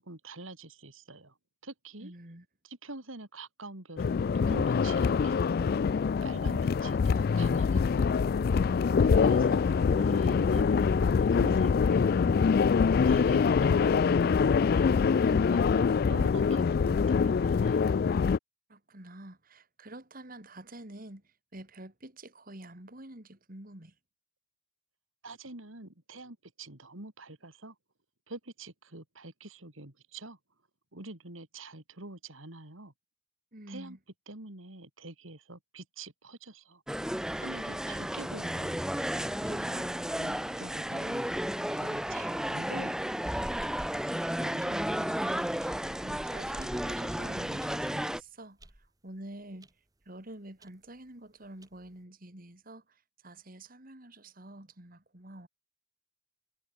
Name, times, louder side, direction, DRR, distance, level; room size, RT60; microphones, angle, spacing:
voice 1, 0.0-1.3 1.6-2.1 2.6-5.7 6.2-8.3 9.0-12.4 13.0-14.4 14.8-17.9 25.2-27.8 28.3-30.4 30.9-32.9 33.7-34.0 34.3-36.8 37.3-38.8 39.4-43.2, right 2 dB, 90° right, 4.0 m, -46 dB
voice 2, 2.0-2.5 9.0-9.5 18.7-24.0 33.5-34.0 39.5-40.1 44.0-49.7 50.0-55.5, right 1 dB, 45° right, 3.2 m, -48 dB
sound 1, 4.0-18.4, left 5 dB, 50° left, 0.3 m, -24 dB
sound 2, 36.9-48.2, equal, 5° right, 0.6 m, -33 dB
sound 3, 42.7-44.1 44.6-44.9 45.6-47.7 48.2-48.3 48.6-48.9 49.6-49.7 50.0-50.1 50.6-50.7 51.4-51.9, right 1 dB, 20° right, 1.4 m, -47 dB
head